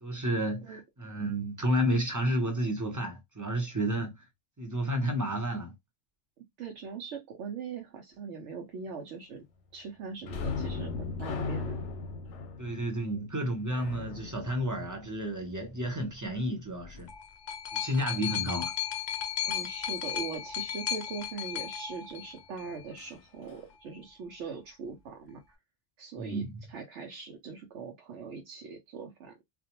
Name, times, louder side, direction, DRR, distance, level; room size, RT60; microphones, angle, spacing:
voice 1, 0.0-4.1 4.6-5.7 12.6-17.1 17.7-18.7 26.2-26.6, equal, 20° right, 0.6 m, -31 dB
voice 2, 6.6-9.4 9.7-11.8 19.4-25.6 26.0-26.4 26.7-29.3, right 5 dB, 90° right, 1.0 m, -41 dB
sound 1, 10.2-15.6 23.0-23.1 23.5-23.7, left 4 dB, 90° left, 0.9 m, -37 dB
sound 2, 16.8-22.8 23.7-23.8, left 9 dB, 55° left, 0.5 m, -35 dB
2.5 x 2.2 x 2.8 m
omnidirectional pair, 1.2 m